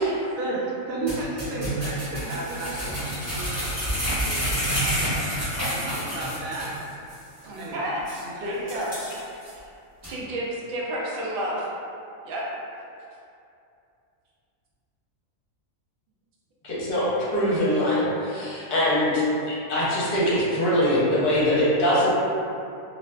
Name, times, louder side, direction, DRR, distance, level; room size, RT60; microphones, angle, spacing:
voice 1, 0.4-3.5 4.3-5.3 5.7-6.7 7.4-7.9 8.2-8.8, right 2 dB, 90° right, -5 dB, 1.0 m, -33 dB
sound 1, 1.1-6.8 7.1-7.2 7.6-7.7 8.1-8.2 8.7-9.5 10.0-10.1, equal, 15° right, 0.8 m, -28 dB
voice 2, 7.5-8.0 8.4-8.9 10.1-11.7 12.2-12.4, right 1 dB, 65° right, -5 dB, 0.5 m, -30 dB
voice 3, 16.6-22.1, left 1 dB, 50° left, -8 dB, 0.8 m, -23 dB
2.5 x 2.2 x 2.2 m, 2.6 s
omnidirectional pair, 1.4 m